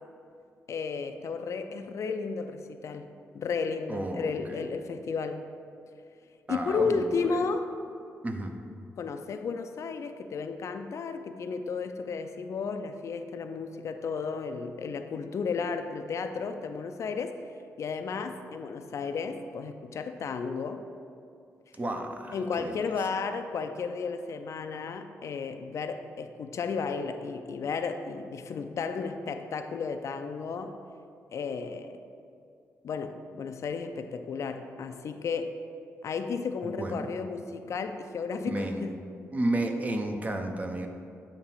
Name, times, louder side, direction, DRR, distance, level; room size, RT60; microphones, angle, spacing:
voice 1, 0.7-3.1 3.3-5.4 6.5-7.7 9.0-17.4 17.8-20.8 22.3-30.8 31.3-32.0 32.8-35.6 36.0-39.0, left 5 dB, 65° left, 8 dB, 0.4 m, -33 dB
voice 2, 3.9-4.7 6.5-7.0 8.2-8.5 21.8-22.7 36.6-37.1 38.5-38.9 39.3-40.9, right 1 dB, 25° right, 4 dB, 0.7 m, -32 dB
8.7 x 2.9 x 5.5 m, 2.4 s
cardioid pair, 95°, 6 cm